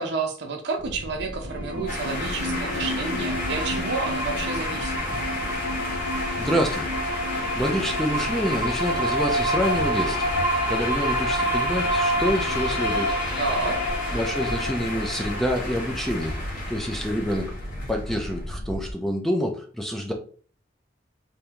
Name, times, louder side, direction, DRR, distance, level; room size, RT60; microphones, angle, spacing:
voice 1, 0.0-5.0 13.4-13.8, right 4 dB, 65° right, 3 dB, 0.7 m, -30 dB
sound 1, 0.8-18.9, equal, 65° left, 0.7 m, -36 dB
sound 2, 1.3-17.2, equal, 85° left, 1.7 m, -28 dB
sound 3, 1.9-18.5, left 2 dB, 45° left, 1.1 m, -34 dB
voice 2, 6.4-6.9 7.6-10.3 10.7-13.2 14.1-16.3 16.7-17.5 17.9-20.1, equal, ahead, 2 dB, 0.4 m, -27 dB
3.4 x 2.6 x 2.8 m, 0.43 s
head